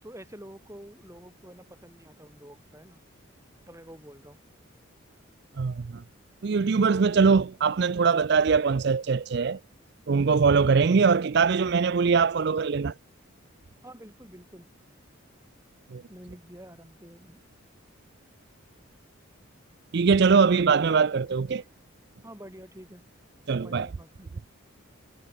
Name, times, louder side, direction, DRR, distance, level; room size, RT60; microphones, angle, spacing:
voice 1, 0.0-3.0 3.7-4.4 13.8-14.7 16.1-17.4 22.2-23.0 23.6-24.4, equal, 15° right, 5.1 m, -47 dB
voice 2, 5.6-6.0 6.4-9.6 10.1-12.9 15.9-16.0 19.9-21.6 23.5-23.9, right 5 dB, 50° right, 0.4 m, -22 dB
head